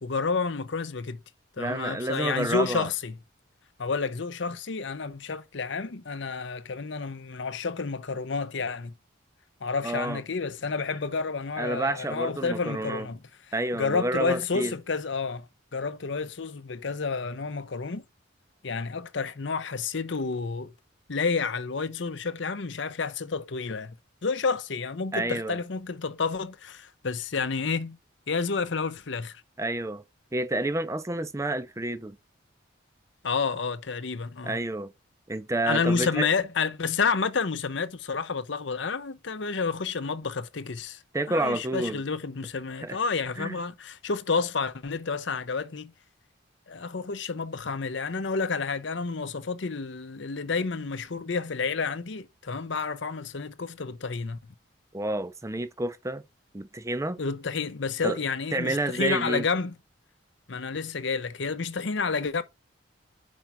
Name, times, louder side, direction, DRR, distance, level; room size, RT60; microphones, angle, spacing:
voice 1, 0.0-1.2 1.6-3.2 3.8-8.9 9.6-13.2 13.7-15.5 15.7-18.0 18.6-20.7 21.1-23.9 24.2-28.0 28.3-29.4 33.2-34.6 35.7-41.0 41.3-45.9 46.7-54.4 57.2-59.8 60.5-62.4, left 4 dB, 65° left, 0.7 m, -30 dB
voice 2, 1.6-2.9 9.8-10.2 11.6-13.1 13.5-14.7 25.1-25.6 29.6-30.0 30.3-32.2 34.4-34.9 35.3-36.3 41.1-42.0 42.8-43.0 43.4-43.6 54.9-56.2 56.5-57.2 58.0-58.2 58.5-59.4, right 2 dB, 15° right, 0.5 m, -29 dB
5.2 x 4.6 x 5.7 m
head